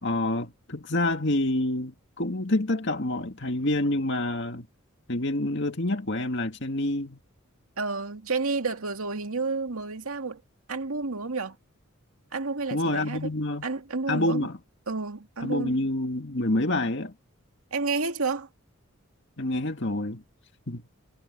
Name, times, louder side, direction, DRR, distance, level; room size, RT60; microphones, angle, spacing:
voice 1, 0.0-4.7 5.1-7.2 12.7-13.7 14.1-14.6 15.4-17.1 19.4-20.2 20.7-20.8, left 1 dB, 55° left, 2.2 m, -27 dB
voice 2, 7.8-10.4 10.7-11.6 12.3-13.3 13.6-14.5 14.9-15.8 17.7-18.5, right 4 dB, 85° right, 2.1 m, -30 dB
head